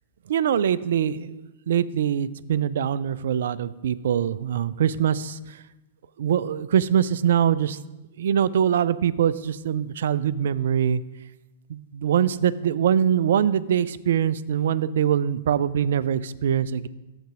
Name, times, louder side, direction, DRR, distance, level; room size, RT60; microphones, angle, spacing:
voice 1, 0.3-5.6 6.2-7.8 8.2-11.0 11.7-16.9, right 9 dB, 60° right, 17 dB, 0.3 m, -23 dB
6.9 x 6.4 x 4.8 m, 1.0 s
figure-of-eight pair, 105°, 0 cm